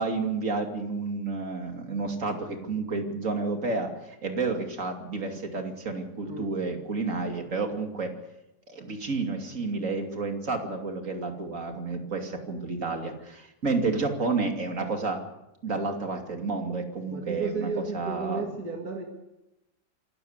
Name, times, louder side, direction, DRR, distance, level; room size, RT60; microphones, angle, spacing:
voice 1, 0.0-3.9 4.2-8.1 8.7-15.2 15.6-17.7 17.9-18.4, right 3 dB, 55° right, 4 dB, 3.0 m, -30 dB
voice 2, 17.1-19.1, right 4 dB, 70° right, 1 dB, 3.0 m, -33 dB
26.0 x 14.0 x 8.2 m, 0.93 s
omnidirectional pair, 1.7 m